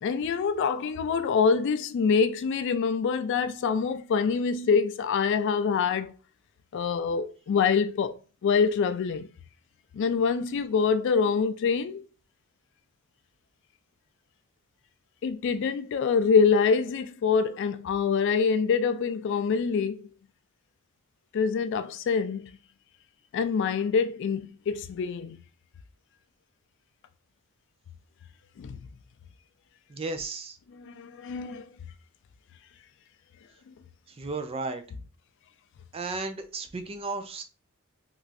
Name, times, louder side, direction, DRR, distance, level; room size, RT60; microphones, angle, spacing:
voice 1, 0.0-6.1 6.7-8.2 8.4-9.3 9.9-12.0 15.2-20.1 21.3-22.4 23.3-25.4 28.6-28.8 30.7-31.7, left 5 dB, 60° left, 0.3 m, -25 dB
voice 2, 29.9-30.6 34.1-34.8 35.9-37.4, right 3 dB, 30° right, 0.4 m, -34 dB
3.0 x 2.5 x 2.5 m
head